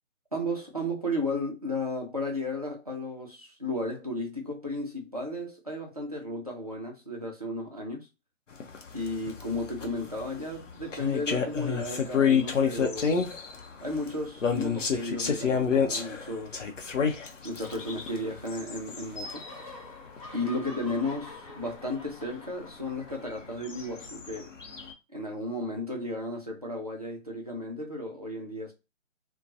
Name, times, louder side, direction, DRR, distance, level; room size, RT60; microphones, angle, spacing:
voice 1, 0.3-8.1 8.9-13.2 13.8-16.6 17.4-19.4 20.3-24.5 25.1-28.7, left 1 dB, 30° right, 0.4 m, -34 dB
sound 1, 8.5-19.7 20.1-20.3 20.6-20.9 21.2-21.3 21.7-21.8 22.1-22.2 23.3-24.9, left 6 dB, 60° left, 0.7 m, -29 dB
sound 2, 17.6-18.8 19.0-24.0, left 2 dB, 25° left, 0.7 m, -48 dB
2.5 x 2.2 x 2.6 m
figure-of-eight pair, 145°, 41 cm